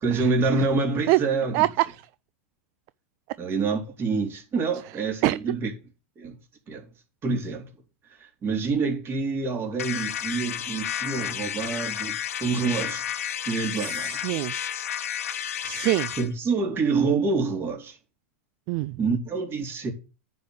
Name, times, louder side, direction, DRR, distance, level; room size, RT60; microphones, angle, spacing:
voice 1, 0.0-1.7 3.4-5.7 6.2-6.4 6.7-6.8 7.2-7.7 8.2-13.0 13.5-14.2 16.2-18.0 19.0-19.9, right 4 dB, 30° right, 4.0 m, -27 dB
voice 2, 1.5-1.8 5.2-5.4 13.8-14.5 15.6-16.1 18.7-19.0, right 19 dB, 50° right, 0.5 m, -24 dB
sound 1, 9.8-16.3, left 10 dB, 85° left, 1.1 m, -31 dB
9.5 x 5.3 x 7.7 m
hypercardioid pair, 115°, 8 cm